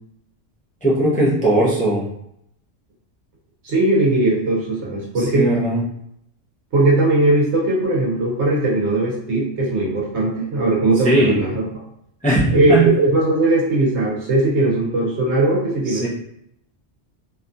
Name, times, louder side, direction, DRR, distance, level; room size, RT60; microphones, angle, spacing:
voice 1, 0.8-2.1 5.2-5.8 11.0-11.4 12.2-12.9 15.9-16.1, right 1 dB, 10° left, -6 dB, 0.3 m, -18 dB
voice 2, 3.6-5.5 6.7-11.6 12.5-16.1, right 2 dB, 75° right, -3 dB, 1.1 m, -19 dB
2.8 x 2.3 x 2.5 m, 0.74 s
omnidirectional pair, 1.2 m